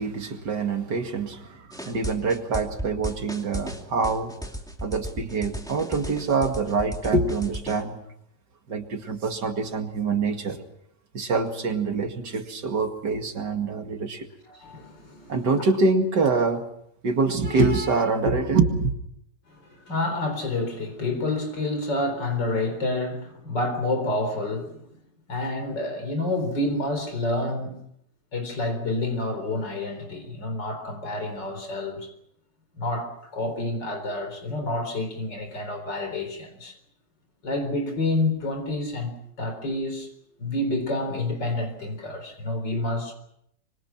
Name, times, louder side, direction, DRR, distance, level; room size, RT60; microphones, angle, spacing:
voice 1, 0.0-4.3 4.8-8.0 8.7-10.6 11.1-14.3 15.3-16.6 17.0-18.9, right 4 dB, 75° right, 2.8 m, -25 dB
sound 1, 1.7-7.8, equal, ahead, 2.5 m, -35 dB
voice 2, 14.5-15.4 19.5-24.8 25.3-27.8 28.3-32.1 32.8-36.7 37.4-39.1 39.4-40.1 40.4-43.1, left 2 dB, 85° left, 4.8 m, -28 dB
26.0 x 24.5 x 5.9 m
omnidirectional pair, 1.9 m